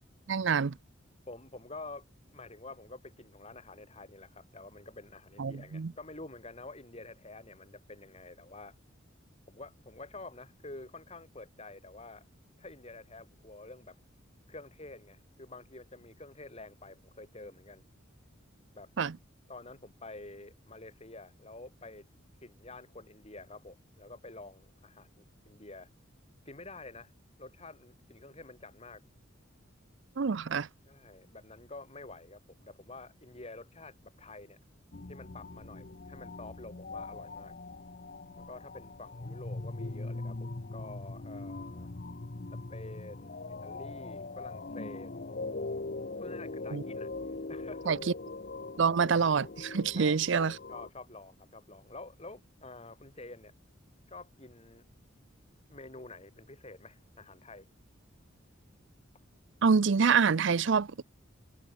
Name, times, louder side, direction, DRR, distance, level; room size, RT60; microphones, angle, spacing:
voice 1, 0.3-0.7 5.4-5.9 19.0-19.1 30.2-30.7 46.7-46.8 47.9-48.0 48.8-50.5 59.6-61.0, right 5 dB, 60° right, 0.5 m, -26 dB
voice 2, 1.3-2.1 2.3-8.8 9.5-12.3 12.6-14.0 14.5-17.8 18.7-18.9 19.5-22.1 22.4-25.9 26.5-27.1 27.4-29.0 30.9-34.6 35.1-37.5 38.4-41.9 42.7-45.1 46.2-48.1 50.0-53.5 54.1-54.8 55.7-57.7, left 2 dB, 30° left, 4.2 m, -48 dB
sound 1, 34.9-50.9, left 3 dB, 45° left, 0.9 m, -41 dB
head